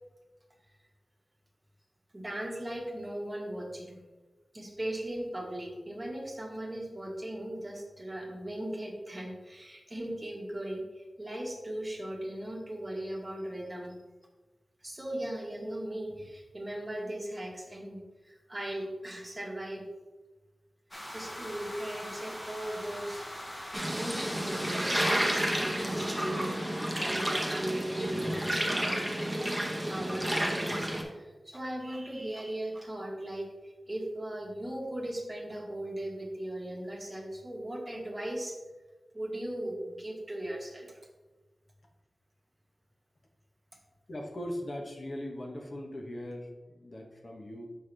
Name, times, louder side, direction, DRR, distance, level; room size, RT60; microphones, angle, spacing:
voice 1, 2.1-4.0 4.5-14.0 14.8-19.9 21.1-23.3 24.0-28.9 29.9-38.6 39.1-41.0, right 1 dB, 25° right, 0 dB, 1.3 m, -38 dB
sound 1, 20.9-27.0, left 1 dB, 20° left, 1.2 m, -42 dB
sound 2, 23.7-31.0, right 1 dB, 10° right, 0.9 m, -31 dB
voice 2, 44.1-47.7, left 1 dB, 45° left, 1 dB, 0.9 m, -40 dB
5.6 x 5.5 x 3.3 m, 1.2 s
wide cardioid pair, 75°, 0 cm